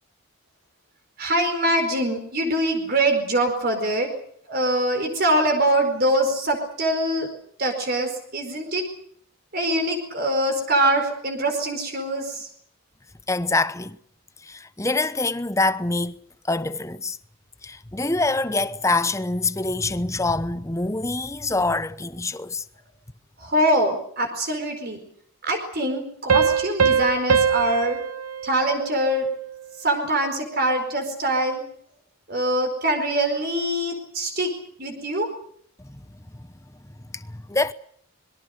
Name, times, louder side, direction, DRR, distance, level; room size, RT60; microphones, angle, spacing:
voice 1, 1.2-4.1 4.5-7.3 7.6-8.8 9.5-12.5 23.4-25.0 25.4-28.0 28.4-29.3 29.8-31.6 32.3-34.5 34.8-35.3, right 1 dB, 45° right, 4.6 m, -23 dB
voice 2, 13.3-14.0 14.4-16.2 16.5-17.2 17.6-22.6 35.8-36.0 36.3-36.5 37.1-37.7, left 2 dB, 15° left, 0.9 m, -25 dB
Piano, 26.3-29.6, right 6 dB, 85° right, 1.2 m, -23 dB
26.0 x 22.0 x 6.6 m
head